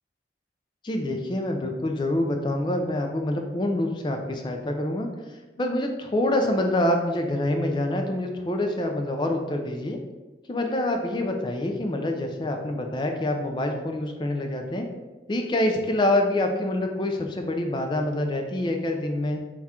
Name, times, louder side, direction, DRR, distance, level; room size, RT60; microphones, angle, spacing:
voice 1, 0.8-5.1 5.6-10.0 10.5-14.9 15.3-19.4, left 1 dB, 25° left, 3 dB, 0.4 m, -26 dB
3.6 x 2.3 x 4.2 m, 1.2 s
head